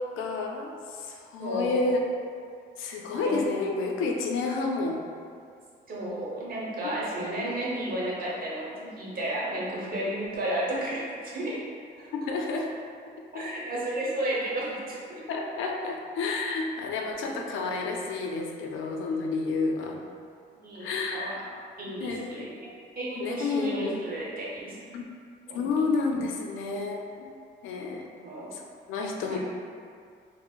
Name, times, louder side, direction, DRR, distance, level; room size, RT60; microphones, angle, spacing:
voice 1, 0.0-2.0 2.8-5.0 6.8-7.0 12.3-12.7 13.3-13.5 15.3-20.0 20.8-21.4 22.0-22.5 23.2-23.7 24.9-25.0 25.5-27.3 27.6-28.1 28.5-28.6 28.9-29.4, left 3 dB, 85° left, 1 dB, 0.4 m, -30 dB
voice 2, 1.4-1.9 3.2-3.4 5.9-11.6 12.0-12.1 13.3-15.2 17.1-17.7 20.6-21.4 21.8-22.6 23.0-24.8 25.4-25.7 28.2-28.5 29.3-29.4, right 1 dB, 45° right, -6 dB, 0.9 m, -33 dB
4.3 x 2.0 x 2.4 m, 2.2 s
cardioid pair, 90°, 20 cm